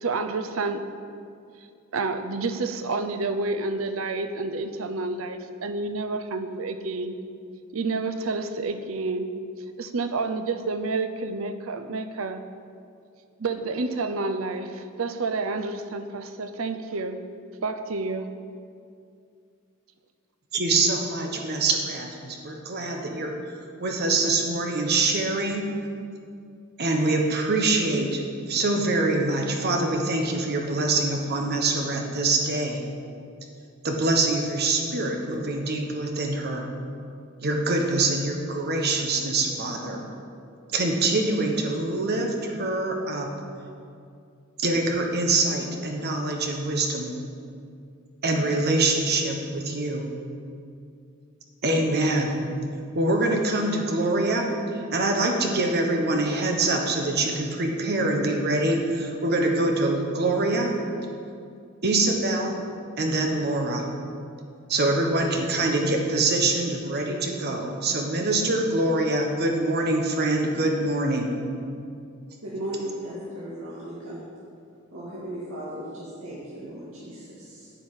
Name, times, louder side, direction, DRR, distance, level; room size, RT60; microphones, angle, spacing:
voice 1, 0.0-1.0 1.9-7.2 7.7-9.3 9.8-12.4 13.4-17.2 17.6-18.3, right 3 dB, 90° right, 9 dB, 0.7 m, -29 dB
voice 2, 20.5-23.3 23.8-25.7 26.8-32.8 33.8-36.7 37.4-40.0 40.7-43.3 44.6-47.1 48.2-50.1 51.6-52.4 52.9-54.5 54.9-60.7 61.8-62.5 63.0-63.9 64.7-71.3, right 2 dB, 50° right, 2 dB, 1.3 m, -24 dB
voice 3, 72.4-74.2 74.9-77.7, right 1 dB, 75° right, -9 dB, 2.1 m, -36 dB
10.0 x 5.6 x 8.1 m, 2.4 s
head